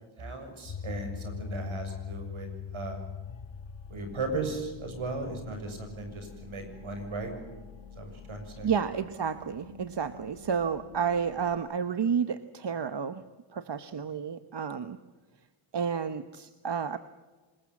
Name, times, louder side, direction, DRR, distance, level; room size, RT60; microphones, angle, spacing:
voice 1, 0.2-3.0 3.9-7.3 7.9-8.7, right 3 dB, 75° right, 5 dB, 7.2 m, -37 dB
sound 1, 0.6-11.6, left 6 dB, 65° left, 1.7 m, -43 dB
voice 2, 8.6-13.2 13.5-15.0 15.7-17.0, right 7 dB, 55° right, 11 dB, 1.1 m, -31 dB
26.0 x 21.5 x 7.3 m, 1.3 s
wide cardioid pair, 90°, 49 cm